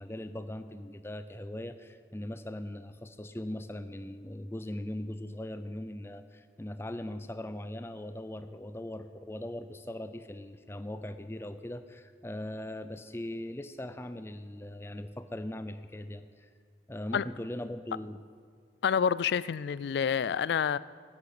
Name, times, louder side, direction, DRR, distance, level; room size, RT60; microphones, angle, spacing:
voice 1, 0.0-16.5 16.9-18.2, left 1 dB, 15° left, 11 dB, 0.5 m, -40 dB
voice 2, 18.8-20.8, left 7 dB, 70° left, 19 dB, 0.3 m, -28 dB
9.7 x 9.6 x 8.5 m, 2.1 s
head